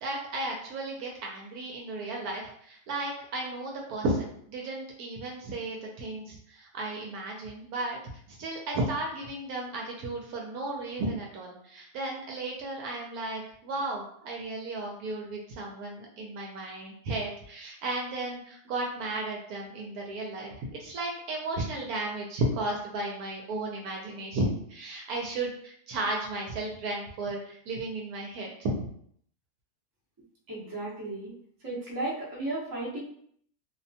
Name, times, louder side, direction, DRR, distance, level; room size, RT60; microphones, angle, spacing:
voice 1, 0.0-8.0 8.4-28.9, right 2 dB, 75° right, -1 dB, 1.0 m, -34 dB
voice 2, 30.5-31.3 31.6-33.0, right 2 dB, 20° right, -7 dB, 0.5 m, -34 dB
2.7 x 2.2 x 2.6 m, 0.65 s
omnidirectional pair, 1.7 m